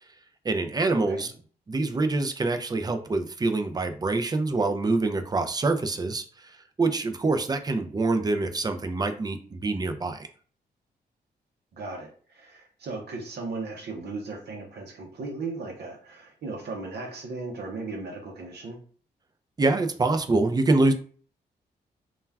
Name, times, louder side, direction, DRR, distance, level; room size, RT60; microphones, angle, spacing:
voice 1, 0.4-1.3 1.7-10.3 19.6-20.9, right 3 dB, 25° right, 7 dB, 0.4 m, -25 dB
voice 2, 1.0-1.3 11.7-18.8, right 3 dB, 70° right, 1 dB, 0.6 m, -36 dB
2.3 x 2.1 x 3.3 m, 0.43 s
cardioid pair, 60°, 17 cm